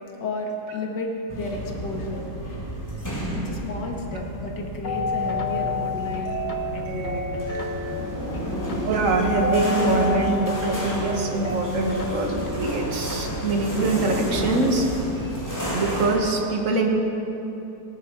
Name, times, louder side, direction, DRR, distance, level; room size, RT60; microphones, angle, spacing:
voice 1, 0.2-2.2 3.4-6.4 6.7-7.5, left 2 dB, 80° left, 1 dB, 2.2 m, -32 dB
sound 1, 1.3-16.2, equal, 10° left, 2.9 m, -32 dB
sound 2, 4.8-13.6, left 5 dB, 35° left, 0.9 m, -30 dB
sound 3, 5.1-12.1, right 9 dB, 85° right, 1.3 m, -35 dB
voice 2, 8.8-14.9 15.7-16.9, right 3 dB, 50° right, 2 dB, 1.7 m, -24 dB
17.5 x 11.0 x 4.6 m, 3.0 s
omnidirectional pair, 1.9 m